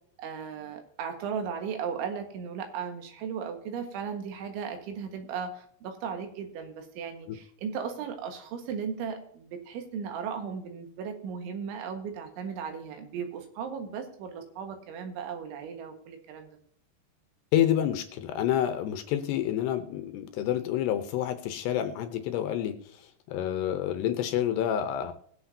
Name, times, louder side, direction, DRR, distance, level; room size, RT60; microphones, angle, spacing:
voice 1, 0.2-16.6, right 6 dB, 90° right, 5 dB, 4.0 m, -36 dB
voice 2, 17.5-25.1, left 11 dB, 80° left, 8 dB, 2.7 m, -28 dB
21.0 x 8.2 x 2.8 m, 0.63 s
omnidirectional pair, 5.2 m